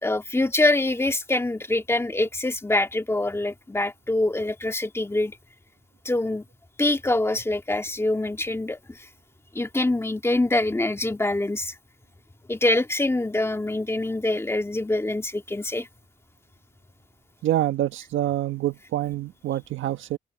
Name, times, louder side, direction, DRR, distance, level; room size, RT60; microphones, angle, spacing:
voice 1, 0.0-5.3 6.1-6.4 6.8-8.8 9.6-11.7 12.5-15.9, left 2 dB, 15° left, 1.9 m, -24 dB
voice 2, 17.4-20.2, right 13 dB, 80° right, 1.6 m, -26 dB
open air
cardioid pair, 90°, 20 cm